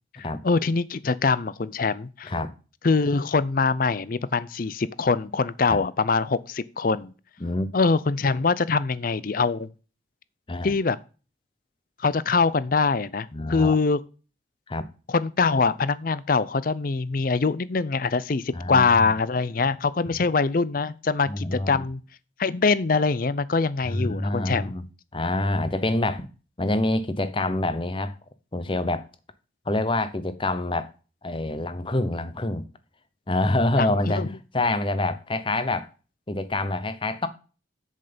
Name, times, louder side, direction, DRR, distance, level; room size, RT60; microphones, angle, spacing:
voice 1, 0.2-2.3 2.8-7.1 7.7-9.7 10.6-11.0 12.0-14.0 15.1-22.0 22.4-24.7 33.7-34.3, left 4 dB, 45° left, 0.5 m, -23 dB
voice 2, 13.3-13.8 14.7-14.9 18.5-19.1 20.1-20.3 21.3-21.9 23.8-24.8 25.1-26.3 26.6-28.2 28.5-29.1 29.7-30.9 31.2-32.7 33.3-34.2 34.5-35.9 36.3-37.3, left 2 dB, 25° left, 0.8 m, -26 dB
7.9 x 7.3 x 5.2 m
head